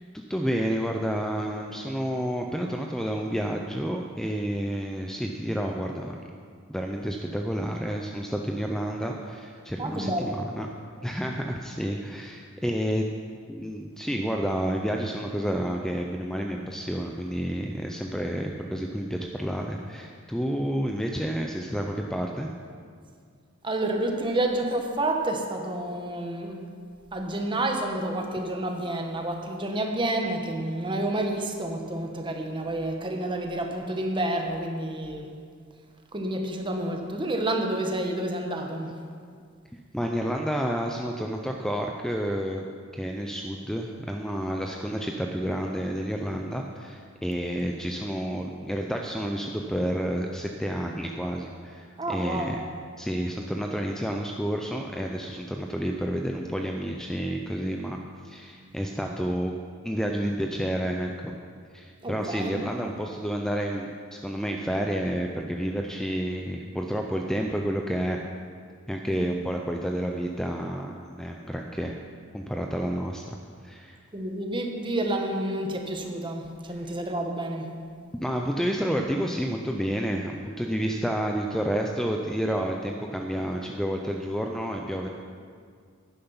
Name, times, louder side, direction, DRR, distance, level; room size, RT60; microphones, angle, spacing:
voice 1, 0.1-6.2 6.7-10.7 11.0-13.1 13.5-22.5 39.9-42.7 42.9-52.6 53.0-59.5 59.8-61.3 61.7-68.2 68.9-72.0 72.3-73.4 73.6-74.0 78.2-85.1, equal, 5° left, 2 dB, 0.5 m, -30 dB
voice 2, 9.8-10.3 23.6-26.6 27.1-35.3 36.1-39.0 52.0-52.5 62.0-62.5 69.1-69.3 74.1-77.7, right 1 dB, 25° right, 3 dB, 1.1 m, -29 dB
11.5 x 10.5 x 5.5 m, 2.1 s
head